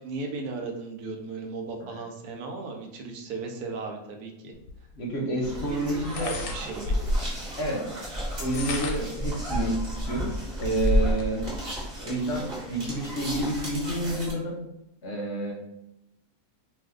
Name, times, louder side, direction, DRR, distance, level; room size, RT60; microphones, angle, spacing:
voice 1, 0.0-4.5 5.7-6.9, right 4 dB, 85° right, 3 dB, 1.1 m, -36 dB
sound 1, 4.7-4.8 6.0-7.4 8.3-9.2 9.8-9.9 10.2-11.3, left 1 dB, 85° left, 1.1 m, -28 dB
voice 2, 5.0-6.4 7.6-7.9 8.4-9.8 10.1-11.4 12.0-14.6 15.0-15.5, right 1 dB, 55° left, -2 dB, 0.8 m, -29 dB
sound 2, 5.4-14.3, equal, 35° right, 0.9 m, -35 dB
2.5 x 2.5 x 3.5 m, 0.84 s
omnidirectional pair, 1.6 m